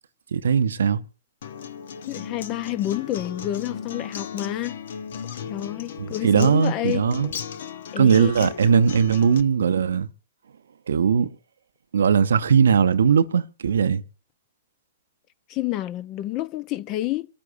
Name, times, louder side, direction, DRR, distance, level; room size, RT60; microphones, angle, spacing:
voice 1, 0.3-1.0 6.0-7.3 8.0-10.1 10.9-11.3 11.9-14.0, right 6 dB, 70° right, 0.6 m, -19 dB
Acoustic guitar, 1.4-9.4, left 7 dB, 60° left, 0.8 m, -36 dB
voice 2, 2.0-4.8 5.5-7.1 7.9-8.5 15.5-17.3, left 14 dB, 35° left, 0.6 m, -29 dB
26.5 x 13.5 x 2.6 m
figure-of-eight pair, 110°, 0 cm